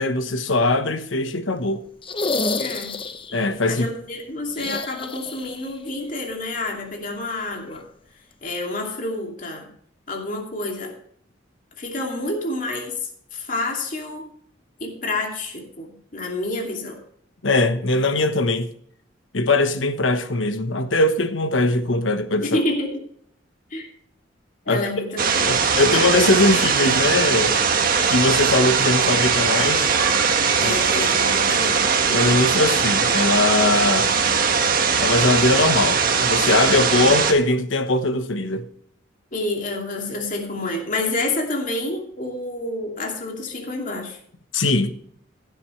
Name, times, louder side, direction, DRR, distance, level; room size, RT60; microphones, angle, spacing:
voice 1, 0.0-1.8 3.3-3.9 17.4-18.7 19.3-22.6 24.7-25.1 25.4-27.5 28.1-29.9 30.6-30.8 32.1-34.1 35.0-38.7 44.5-44.9, left 2 dB, 80° left, 1.2 m, -21 dB
sound 1, 2.0-3.4 4.5-5.7 6.0-6.1 7.7-7.8, left 3 dB, 30° left, 0.8 m, -28 dB
voice 2, 2.6-2.9 3.7-7.8 8.4-9.7 10.1-10.9 11.8-14.2 14.8-17.0 22.4-23.0 23.7-23.9 24.7-25.6 30.6-31.8 39.3-44.2, left 2 dB, 45° left, 2.6 m, -28 dB
sound 2, 25.2-37.3, right 5 dB, 50° right, 1.5 m, -20 dB
16.0 x 8.3 x 3.3 m
head